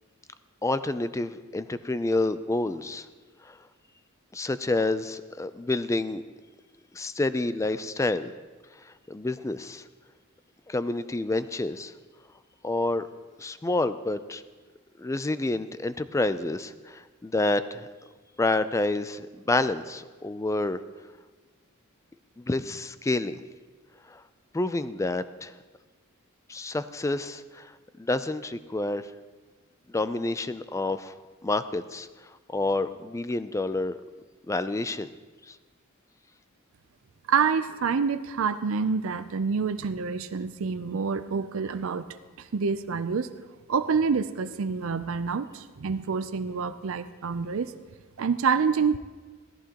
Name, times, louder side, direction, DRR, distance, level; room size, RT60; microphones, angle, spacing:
voice 1, 0.6-3.1 3.4-3.6 4.3-6.2 6.9-8.3 8.9-9.8 10.7-11.9 12.6-13.1 13.4-14.4 15.0-17.9 18.4-20.8 22.4-23.4 24.1-24.2 24.5-25.5 26.5-27.7 28.0-29.0 29.9-31.2 31.4-32.1 32.5-34.0 34.5-35.1 35.5-35.6, left 2 dB, 15° left, 13 dB, 0.4 m, -28 dB
voice 2, 37.3-42.0 42.4-47.7 48.2-49.0, right 5 dB, 65° right, 11 dB, 0.5 m, -27 dB
16.5 x 14.0 x 2.9 m, 1.3 s
head